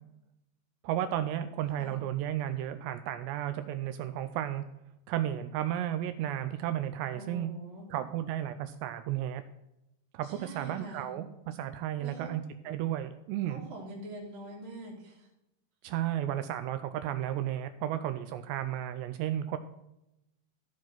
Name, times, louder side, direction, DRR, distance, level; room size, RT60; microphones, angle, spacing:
voice 1, 0.8-4.6 5.1-7.5 7.9-9.4 10.1-13.7 15.8-19.6, right 12 dB, 80° right, 10 dB, 2.7 m, -33 dB
voice 2, 7.1-7.9 10.2-11.2 12.0-12.3 13.5-15.3, right 1 dB, 45° right, -6 dB, 3.3 m, -44 dB
14.5 x 4.9 x 6.1 m, 0.87 s
omnidirectional pair, 5.2 m